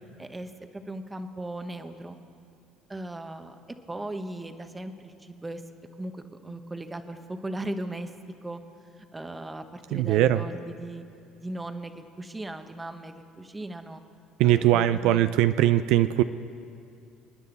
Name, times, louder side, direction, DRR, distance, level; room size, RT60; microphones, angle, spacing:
voice 1, 0.2-2.2 2.9-3.5 3.9-5.6 6.0-8.1 8.4-8.6 9.0-11.0 11.4-14.0 14.4-15.2, right 1 dB, 15° right, 8 dB, 1.0 m, -37 dB
voice 2, 9.9-10.4 14.4-16.2, right 13 dB, 75° right, 12 dB, 0.4 m, -21 dB
28.0 x 9.8 x 4.1 m, 2.6 s
supercardioid pair, 95°, 0 cm